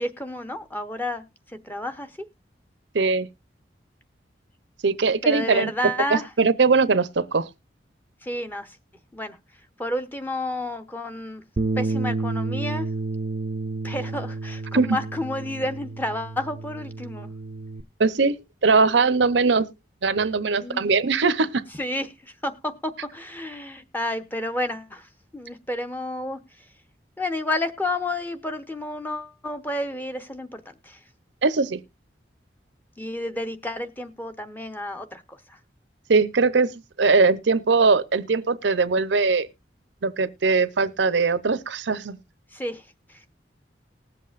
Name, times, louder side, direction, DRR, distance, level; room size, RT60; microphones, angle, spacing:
voice 1, 0.0-2.3 5.1-6.3 8.2-8.8 9.1-9.4 9.8-11.4 11.8-12.9 13.8-17.3 20.6-20.8 21.8-26.7 27.2-31.0 33.0-35.6 42.5-43.3, left 1 dB, 10° left, 0.9 m, -31 dB
voice 2, 2.9-3.3 4.8-5.7 6.1-7.5 14.7-15.0 18.0-18.4 18.6-19.7 20.0-21.6 31.4-31.8 36.1-36.7 37.0-39.5 40.0-42.2, right 4 dB, 85° right, 0.7 m, -20 dB
Bass guitar, 11.6-17.8, right 3 dB, 40° right, 0.6 m, -30 dB
19.5 x 7.6 x 2.5 m
head